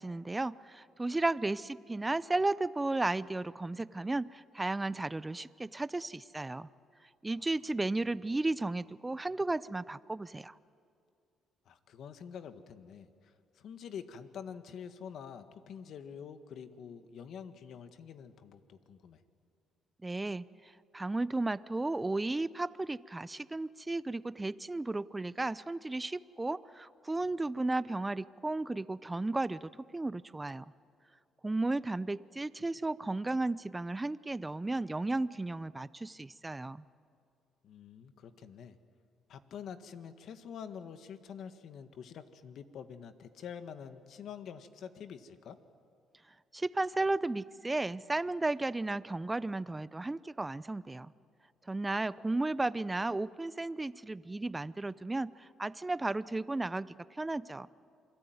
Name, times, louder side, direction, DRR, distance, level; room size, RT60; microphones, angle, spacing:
voice 1, 0.0-6.7 7.2-10.5 20.0-20.5 20.9-30.7 31.4-36.8 46.5-51.1 51.7-57.7, right 2 dB, 15° right, 16 dB, 0.6 m, -34 dB
voice 2, 11.6-19.2 37.6-38.8 39.3-45.6, left 7 dB, 65° left, 9 dB, 1.6 m, -47 dB
28.0 x 22.0 x 9.4 m, 2.3 s
cardioid pair, 105°, 0 cm